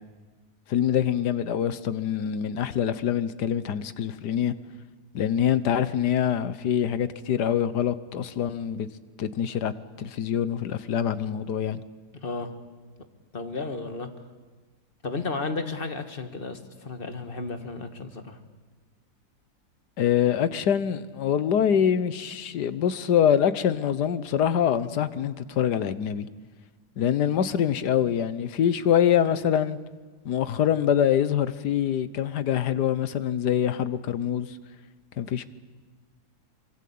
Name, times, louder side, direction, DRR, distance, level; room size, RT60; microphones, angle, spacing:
voice 1, 0.7-4.5 5.1-8.9 9.2-9.7 10.0-11.8 20.0-26.3 27.0-29.8 30.2-34.6 35.2-35.4, left 9 dB, 85° left, 1.6 m, -25 dB
voice 2, 12.2-12.5 13.3-14.1 15.0-18.4, left 3 dB, 35° left, 1.9 m, -33 dB
24.5 x 24.0 x 8.6 m
omnidirectional pair, 1.7 m